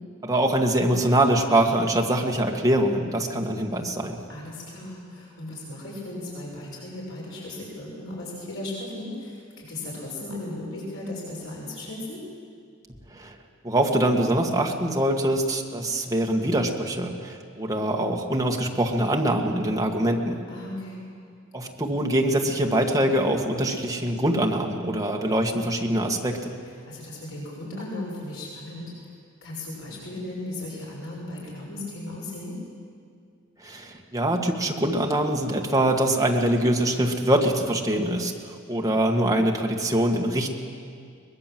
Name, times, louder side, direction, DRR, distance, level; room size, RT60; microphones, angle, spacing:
voice 1, 0.2-4.2 13.1-13.4 13.6-20.4 21.5-26.5 33.6-40.5, right 1 dB, 15° right, 1 dB, 1.9 m, -24 dB
voice 2, 4.3-12.2 20.5-21.0 26.9-29.1 29.4-32.6, left 1 dB, 65° left, -4 dB, 5.9 m, -36 dB
23.0 x 20.5 x 7.7 m, 2.2 s
head